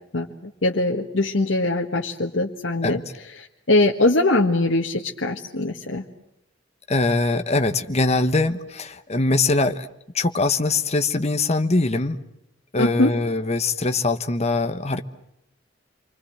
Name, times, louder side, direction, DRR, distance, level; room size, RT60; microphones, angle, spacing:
voice 1, 0.6-3.0 3.7-6.0 12.8-13.1, left 2 dB, 80° left, 0 dB, 1.6 m, -21 dB
voice 2, 6.9-9.9 10.1-12.2 12.7-15.0, left 3 dB, 35° left, 8 dB, 1.2 m, -22 dB
29.0 x 24.5 x 7.9 m, 0.83 s
head